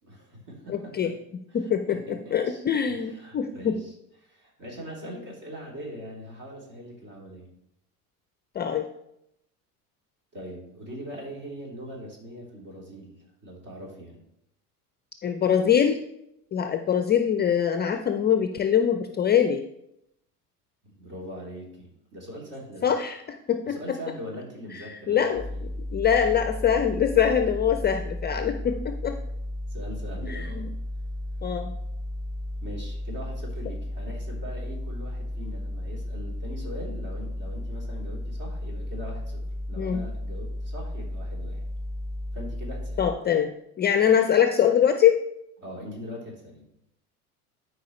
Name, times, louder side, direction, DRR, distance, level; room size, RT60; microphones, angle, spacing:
voice 1, 0.0-1.1 1.5-2.6 2.9-3.9 4.2-7.5 10.3-14.2 20.8-22.9 23.6-26.2 29.7-30.6 32.6-41.6 42.3-43.1 45.6-46.7, equal, 40° right, -2 dB, 3.4 m, -41 dB
voice 2, 0.7-1.1 1.5-3.8 8.6-8.8 15.2-16.0 16.5-19.7 22.8-23.2 23.5-23.8 24.7-25.4 25.9-29.2 30.2-30.7 31.4-31.7 39.8-40.0 43.0-45.2, left 8 dB, 20° left, 7 dB, 0.5 m, -23 dB
sound 1, 25.3-43.1, left 1 dB, 90° right, 3.4 m, -34 dB
12.0 x 5.0 x 3.1 m, 0.80 s
hypercardioid pair, 75°, 47 cm